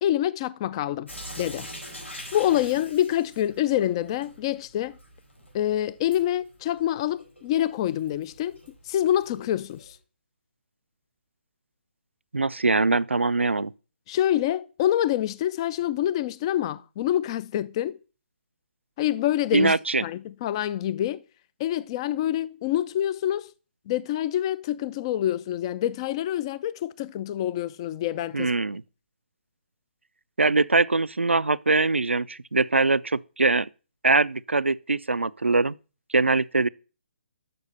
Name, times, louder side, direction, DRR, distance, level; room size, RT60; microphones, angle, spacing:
voice 1, 0.0-1.1 1.4-1.7 2.3-5.0 5.5-8.6 8.9-10.0 14.1-18.0 19.0-19.7 20.0-21.2 21.6-23.5 23.9-28.5, left 12 dB, 25° left, 0.3 m, -26 dB
Sink (filling or washing) / Drip, 1.1-10.0, equal, 85° left, 4.1 m, -45 dB
voice 2, 12.3-13.7 19.5-20.0 28.3-28.8 30.4-33.7 34.0-35.7 36.1-36.7, right 3 dB, 85° right, 0.3 m, -22 dB
6.8 x 6.2 x 5.4 m
figure-of-eight pair, 140°, 6 cm